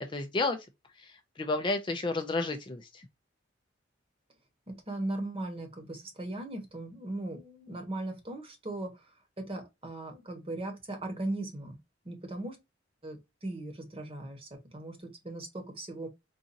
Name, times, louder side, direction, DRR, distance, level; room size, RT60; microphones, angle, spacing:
voice 1, 0.1-0.6 1.0-3.1, left 3 dB, 25° left, 0.4 m, -31 dB
voice 2, 4.7-11.8 12.0-12.6 13.0-16.1, right 2 dB, 30° right, 1.1 m, -38 dB
3.9 x 2.5 x 2.6 m
head